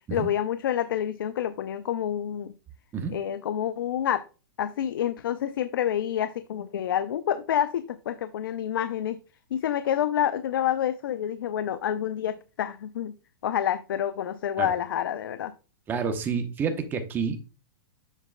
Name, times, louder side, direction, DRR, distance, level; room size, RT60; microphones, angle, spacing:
voice 1, 0.1-2.5 3.1-4.2 4.6-9.2 9.5-13.1 13.4-15.5, left 10 dB, 80° left, 0.5 m, -28 dB
voice 2, 15.9-17.4, right 6 dB, 15° right, 0.9 m, -29 dB
7.3 x 6.6 x 2.2 m
hypercardioid pair, 155°, 11 cm